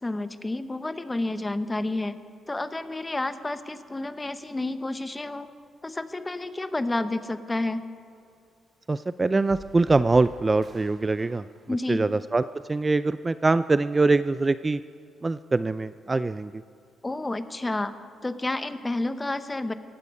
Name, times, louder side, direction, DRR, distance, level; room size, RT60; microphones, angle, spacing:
voice 1, 0.0-2.2 2.5-5.5 5.8-7.8 11.7-12.1 17.0-17.9 18.2-19.7, left 2 dB, 15° left, 11 dB, 0.9 m, -30 dB
voice 2, 8.9-11.4 11.9-14.8 15.2-16.5, right 3 dB, 25° right, 14 dB, 0.3 m, -23 dB
sound 1, 9.4-12.7, right 2 dB, 40° right, 2.8 m, -48 dB
17.5 x 15.5 x 5.4 m, 2.5 s
cardioid pair, 90°, 0 cm